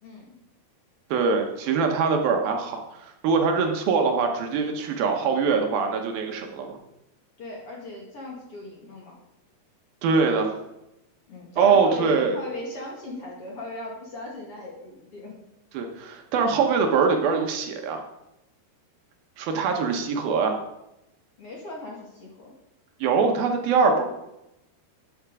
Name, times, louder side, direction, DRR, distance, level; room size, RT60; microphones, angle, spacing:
voice 1, 1.1-6.8 10.0-10.5 11.6-12.4 15.7-18.0 19.4-20.6 23.0-24.0, right 5 dB, 70° right, 4 dB, 2.7 m, -23 dB
voice 2, 7.4-9.2 11.3-15.4 21.4-22.5, left 2 dB, 45° left, -2 dB, 2.4 m, -38 dB
13.0 x 9.0 x 4.8 m, 0.91 s
omnidirectional pair, 4.6 m